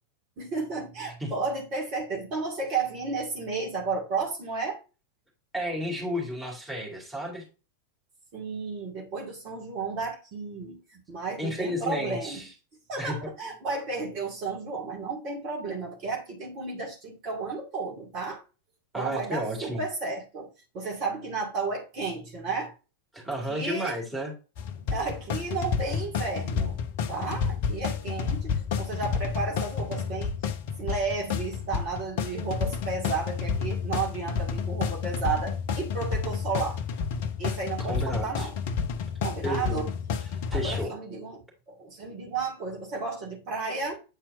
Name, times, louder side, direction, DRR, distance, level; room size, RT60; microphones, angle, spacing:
voice 1, 0.4-4.8 8.3-12.4 12.9-18.4 18.9-22.7 23.5-24.0 24.9-26.8 27.1-30.4 30.8-36.8 37.4-38.6 39.2-39.9 40.5-44.0, right 4 dB, 40° right, 2.2 m, -33 dB
voice 2, 5.5-7.4 11.4-12.5 13.0-13.2 13.4-13.5 18.9-19.8 23.1-24.3 37.9-38.5 39.4-39.8 40.5-40.9, equal, 5° right, 2.6 m, -32 dB
sound 1, 24.6-40.9, left 6 dB, 50° left, 0.6 m, -30 dB
8.4 x 4.4 x 2.6 m
figure-of-eight pair, 90°, 0 cm